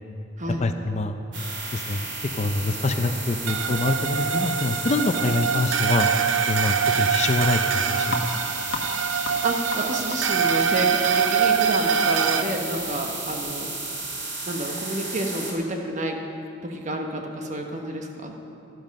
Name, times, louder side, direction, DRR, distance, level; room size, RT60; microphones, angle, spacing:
voice 1, 0.6-1.2 1.7-2.1 2.3-6.1 6.5-8.3, left 2 dB, 35° left, 7 dB, 0.6 m, -25 dB
sound 1, 1.3-15.5, right 3 dB, 65° right, 2.9 m, -33 dB
sound 2, 3.5-12.4, right 7 dB, 85° right, 0.6 m, -24 dB
sound 3, 8.0-14.2, left 3 dB, 75° left, 1.4 m, -38 dB
voice 2, 9.4-13.7 14.5-16.2 16.6-18.4, right 1 dB, 40° right, 3 dB, 1.3 m, -29 dB
13.0 x 12.5 x 5.3 m, 2.8 s
head